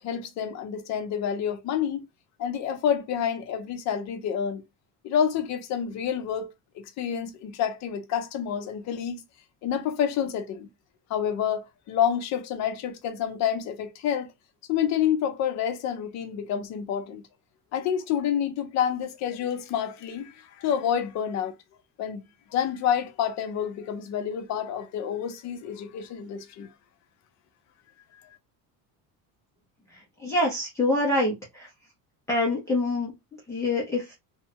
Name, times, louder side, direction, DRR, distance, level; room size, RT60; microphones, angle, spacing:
voice 1, 0.0-2.0 2.4-4.6 5.0-9.2 9.6-10.7 11.1-14.3 14.7-17.2 17.7-21.5 22.0-22.2 22.5-26.7, left 8 dB, 45° left, 0.7 m, -28 dB
voice 2, 29.9-31.7 32.3-34.1, left 2 dB, 10° left, 0.6 m, -26 dB
3.0 x 2.2 x 2.7 m
cardioid pair, 180°, 37 cm